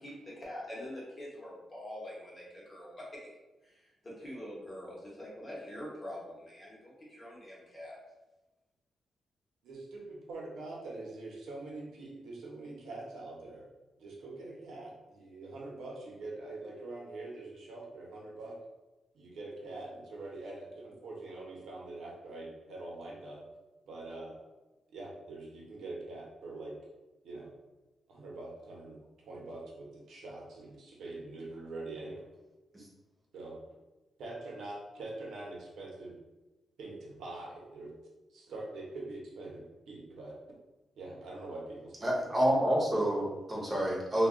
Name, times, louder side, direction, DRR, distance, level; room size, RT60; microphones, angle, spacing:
voice 1, 0.0-3.3 3.6-8.0 44.2-44.3, left 1 dB, 20° left, -5 dB, 0.8 m, -45 dB
voice 2, 9.6-13.6 14.0-18.6 19.1-23.4 23.9-24.3 24.9-26.8 27.2-27.5 28.1-32.2 33.3-33.6 34.2-36.1 36.8-37.9 38.3-40.4 41.0-42.1 42.5-42.6 43.0-43.1, right 2 dB, 80° right, -2 dB, 0.8 m, -44 dB
voice 3, 42.0-44.3, equal, 20° right, -4 dB, 0.7 m, -28 dB
2.3 x 2.2 x 3.6 m, 1.1 s
wide cardioid pair, 165°, 0 cm